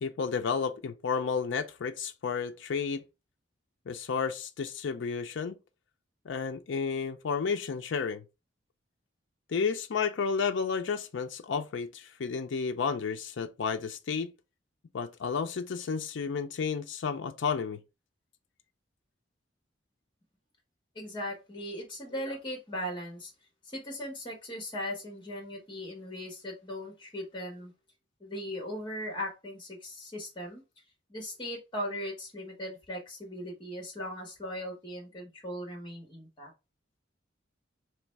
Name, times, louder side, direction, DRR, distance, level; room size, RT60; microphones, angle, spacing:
voice 1, 0.0-3.0 3.9-5.5 6.3-8.2 9.5-14.3 14.9-17.8, left 5 dB, 75° left, 0.4 m, -32 dB
voice 2, 20.9-23.3 23.7-27.7 28.2-30.6 31.1-36.5, equal, 25° left, 1.6 m, -38 dB
3.2 x 3.1 x 4.5 m
head